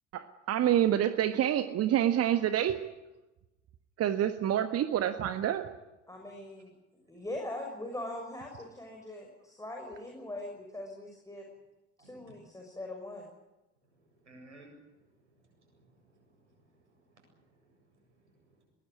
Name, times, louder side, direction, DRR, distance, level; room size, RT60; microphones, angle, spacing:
voice 1, 0.1-2.8 4.0-5.7, right 11 dB, 45° right, 10 dB, 1.5 m, -27 dB
voice 2, 6.1-6.7 7.1-11.4 12.0-13.3, left 1 dB, 10° left, 0 dB, 6.4 m, -41 dB
voice 3, 12.0-12.3 14.2-14.8 15.2-18.6, right 1 dB, 80° right, 2 dB, 8.0 m, -59 dB
22.5 x 20.0 x 9.7 m, 1.0 s
figure-of-eight pair, 55°, 35 cm